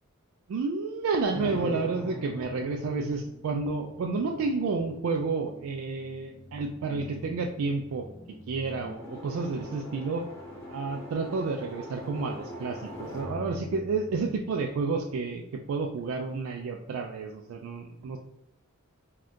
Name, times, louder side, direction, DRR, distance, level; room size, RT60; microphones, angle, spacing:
voice 1, 0.5-8.1 8.5-10.2 10.7-18.2, right 4 dB, 70° right, 3 dB, 0.3 m, -30 dB
sound 1, 1.3-15.1, equal, 10° left, 0.9 m, -42 dB
2.6 x 2.4 x 3.5 m, 0.83 s
head